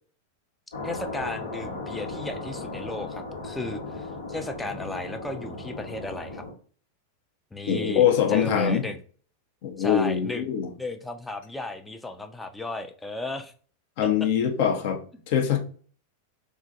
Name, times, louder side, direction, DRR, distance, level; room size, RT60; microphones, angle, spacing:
sound 1, 0.7-6.5, left 3 dB, 70° left, 1.0 m, -36 dB
voice 1, 0.8-6.4 7.5-9.0 9.8-10.5 10.8-13.5 14.0-14.1, left 2 dB, 5° left, 0.4 m, -35 dB
voice 2, 7.7-8.8 9.6-10.7 14.0-15.0 15.3-15.6, left 8 dB, 50° left, 0.6 m, -23 dB
3.7 x 2.4 x 2.5 m
figure-of-eight pair, 90°, 0 cm